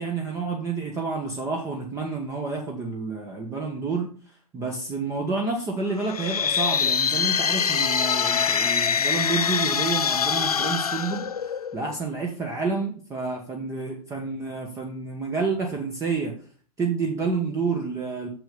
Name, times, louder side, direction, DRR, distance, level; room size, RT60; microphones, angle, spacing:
voice 1, 0.0-4.1 4.5-11.3 11.7-16.3 16.8-18.3, right 4 dB, 15° right, 1 dB, 1.2 m, -29 dB
sound 1, 6.0-11.9, left 7 dB, 80° left, 0.4 m, -24 dB
6.8 x 6.0 x 5.3 m, 0.43 s
figure-of-eight pair, 100°, 19 cm